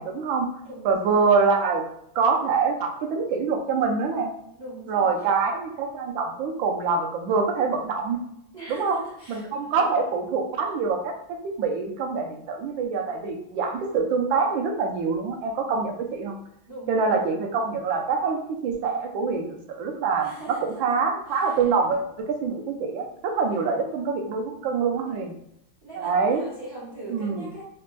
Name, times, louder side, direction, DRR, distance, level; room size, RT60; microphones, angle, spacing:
voice 1, 0.0-0.5 0.8-1.9 2.1-4.3 4.9-8.2 8.7-9.0 9.3-11.1 11.4-16.4 16.9-25.3 25.9-26.5 27.1-27.5, right 5 dB, 75° right, 3 dB, 1.3 m, -25 dB
voice 2, 0.6-1.2 4.6-5.1 8.5-9.9 16.7-17.8 20.2-21.0 21.3-21.6 23.5-23.6 25.0-25.2 25.8-27.6, right 2 dB, 40° right, -8 dB, 0.8 m, -41 dB
4.0 x 3.3 x 2.2 m, 0.75 s
omnidirectional pair, 2.3 m